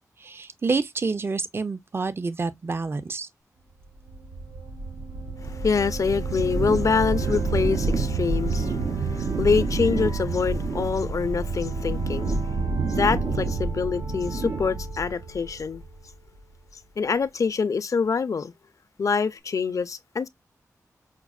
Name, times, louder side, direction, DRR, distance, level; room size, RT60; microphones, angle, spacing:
voice 1, 0.2-3.3, right 4 dB, 40° right, 0.4 m, -28 dB
sound 1, 4.1-16.1, right 3 dB, 90° right, 0.7 m, -28 dB
voice 2, 5.4-12.4 12.9-15.8 17.0-18.5 19.0-20.3, left 5 dB, 60° left, 0.4 m, -25 dB
5.8 x 2.0 x 2.3 m
cardioid pair, 50°, 6 cm